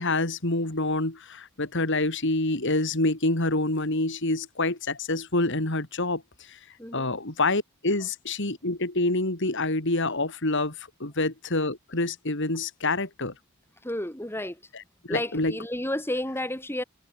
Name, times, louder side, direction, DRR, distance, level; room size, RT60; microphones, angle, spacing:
voice 1, 0.0-6.2 6.5-6.6 6.9-10.8 11.0-13.3 15.1-15.6, left 2 dB, 55° left, 3.4 m, -27 dB
voice 2, 6.8-7.1 13.8-14.6 15.1-16.8, left 1 dB, 10° left, 5.4 m, -31 dB
head